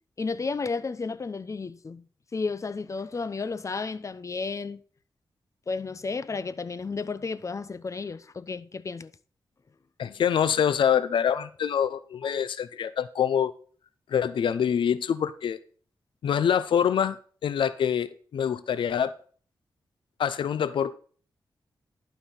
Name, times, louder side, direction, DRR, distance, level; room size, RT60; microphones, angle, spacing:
voice 1, 0.2-2.0 2.3-4.8 5.7-9.1 12.2-12.4, left 4 dB, 40° left, 0.8 m, -32 dB
voice 2, 10.0-13.5 14.1-15.6 16.2-19.1 20.2-20.9, left 8 dB, 85° left, 0.6 m, -25 dB
11.5 x 5.6 x 4.0 m
cardioid pair, 80°, 8 cm